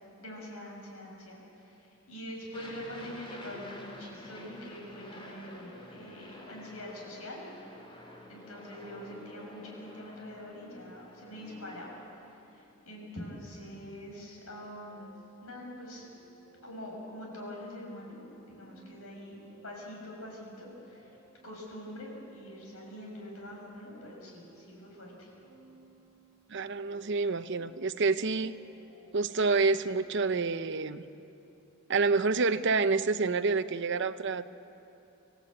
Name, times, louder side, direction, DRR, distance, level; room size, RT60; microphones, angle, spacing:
voice 1, 0.2-1.8 2.1-7.5 8.3-12.0 12.5-15.1 15.4-16.0 16.6-21.1 21.4-25.3, left 1 dB, 90° left, -1 dB, 6.9 m, -44 dB
Aircraft, 2.5-12.0, left 1 dB, 25° left, 3.2 m, -48 dB
sound 1, 14.9-30.4, right 1 dB, 40° left, 7.8 m, -59 dB
voice 2, 26.5-28.5 29.1-31.0 31.9-34.5, right 4 dB, 55° right, 11 dB, 0.8 m, -28 dB
27.5 x 16.5 x 8.7 m, 2.9 s
head